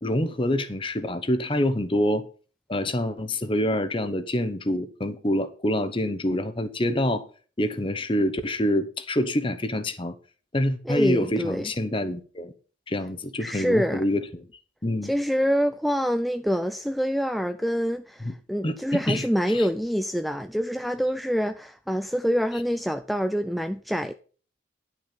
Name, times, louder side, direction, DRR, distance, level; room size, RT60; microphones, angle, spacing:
voice 1, 0.0-2.2 2.7-7.3 7.6-10.1 10.5-12.5 12.9-14.5 14.8-15.1 18.2-18.3 18.6-19.7, left 1 dB, 25° left, 0.9 m, -26 dB
voice 2, 10.9-11.7 13.4-14.0 15.0-24.1, equal, ahead, 0.4 m, -26 dB
11.0 x 6.1 x 5.7 m
head